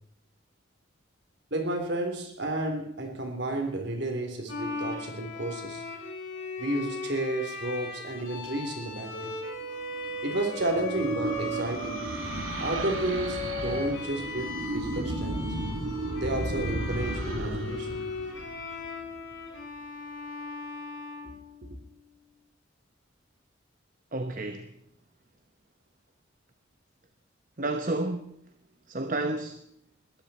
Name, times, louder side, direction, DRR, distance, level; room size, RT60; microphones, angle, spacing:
voice 1, 1.5-5.8 6.6-9.4 10.2-12.1 12.6-15.5 16.1-18.1 21.2-21.3 21.6-21.7, right 1 dB, 60° right, 3.5 m, -32 dB
Bowed string instrument, 4.5-21.9, left 2 dB, 75° left, 6.1 m, -38 dB
sound 1, 9.6-19.2, right 2 dB, 85° right, 2.3 m, -34 dB
voice 2, 24.1-24.7 27.6-28.4 28.9-29.6, right 2 dB, 40° right, 1.0 m, -31 dB
20.5 x 13.5 x 4.4 m
head